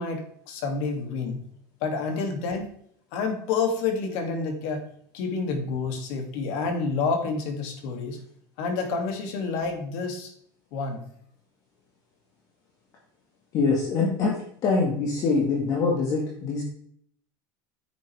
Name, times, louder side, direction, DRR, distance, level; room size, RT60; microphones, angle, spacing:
voice 1, 0.0-1.4 1.8-2.7 3.1-4.9 5.1-8.2 8.6-10.3 10.7-11.0, left 4 dB, 60° left, 4 dB, 2.6 m, -29 dB
voice 2, 13.5-16.6, left 4 dB, 35° left, -1 dB, 1.9 m, -24 dB
10.0 x 8.2 x 3.5 m, 0.63 s
cardioid pair, 165°, 10 cm